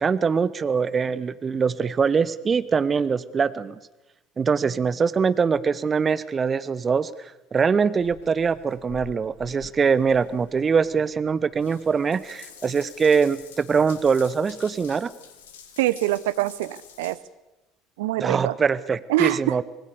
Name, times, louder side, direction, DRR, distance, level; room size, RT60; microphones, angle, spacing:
voice 1, 0.0-3.8 4.4-7.1 7.5-15.1 18.2-19.6, right 5 dB, 30° right, 16 dB, 1.0 m, -23 dB
Water tap faucet / Bathtub (filling or washing) / Drip, 8.0-17.2, left 8 dB, 70° left, 2.4 m, -48 dB
voice 2, 15.8-17.2 18.0-18.5 19.1-19.6, right 16 dB, 65° right, 17 dB, 0.8 m, -24 dB
25.0 x 19.5 x 6.8 m, 1.0 s
figure-of-eight pair, 65°, 0 cm